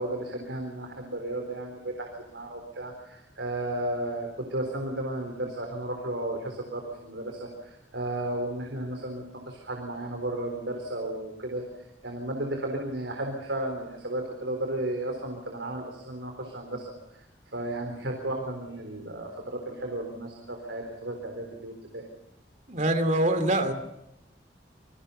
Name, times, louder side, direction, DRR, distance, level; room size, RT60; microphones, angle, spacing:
voice 1, 0.0-11.6 12.0-16.8 17.5-22.0, right 1 dB, 85° right, 2 dB, 4.0 m, -34 dB
voice 2, 22.7-23.7, right 1 dB, 45° right, 8 dB, 2.7 m, -24 dB
27.5 x 23.0 x 5.6 m, 0.87 s
head